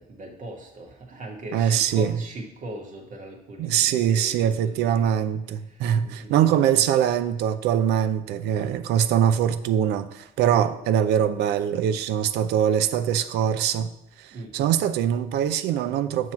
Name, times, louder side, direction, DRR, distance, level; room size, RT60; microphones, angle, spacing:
voice 1, 0.0-5.2 5.7-6.5 14.3-14.7, right 1 dB, 50° right, 1.5 m, -40 dB
voice 2, 1.5-2.1 3.6-13.9 14.2-16.3, right 9 dB, 80° right, 0.5 m, -23 dB
7.5 x 3.1 x 5.8 m
cardioid pair, 110°, 17 cm